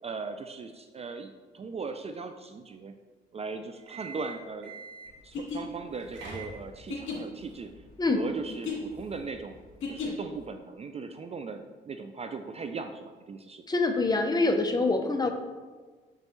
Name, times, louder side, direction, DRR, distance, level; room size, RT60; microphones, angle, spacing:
voice 1, 0.0-2.9 3.3-4.7 5.2-7.7 8.0-9.6 9.9-13.6 15.2-15.3, right 4 dB, 30° right, 7 dB, 0.4 m, -38 dB
sound 1, 3.8-5.3 5.9-7.0, right 3 dB, 70° right, 2.0 m, -43 dB
sound 2, 5.2-10.4, left 4 dB, 80° left, 1.7 m, -37 dB
voice 2, 13.7-15.3, left 3 dB, 20° left, 5 dB, 0.7 m, -25 dB
6.6 x 5.3 x 3.1 m, 1.4 s
cardioid pair, 90°, 20 cm